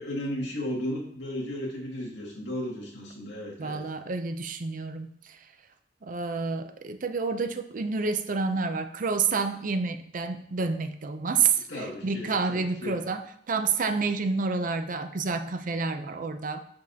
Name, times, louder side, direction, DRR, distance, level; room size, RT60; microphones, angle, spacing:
voice 1, 0.0-3.8 11.7-13.0, left 1 dB, 75° left, -2 dB, 2.1 m, -34 dB
voice 2, 3.6-5.4 6.0-16.7, right 4 dB, 45° right, 8 dB, 0.5 m, -29 dB
10.5 x 5.3 x 2.8 m, 0.68 s
head